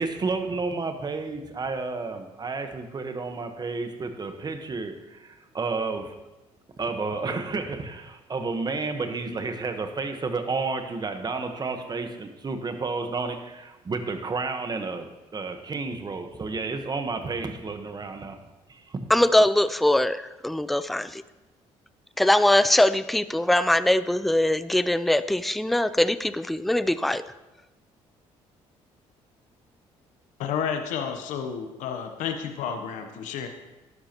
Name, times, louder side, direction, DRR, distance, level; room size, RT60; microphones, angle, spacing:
voice 1, 0.0-6.2 6.8-18.4 18.7-19.0, right 4 dB, 35° right, 7 dB, 1.2 m, -31 dB
voice 2, 19.1-21.2 22.2-27.2, left 1 dB, ahead, 14 dB, 0.4 m, -22 dB
voice 3, 30.4-33.5, left 7 dB, 80° left, 6 dB, 0.9 m, -31 dB
12.0 x 11.0 x 3.0 m, 1.1 s
supercardioid pair, 80°, 13 cm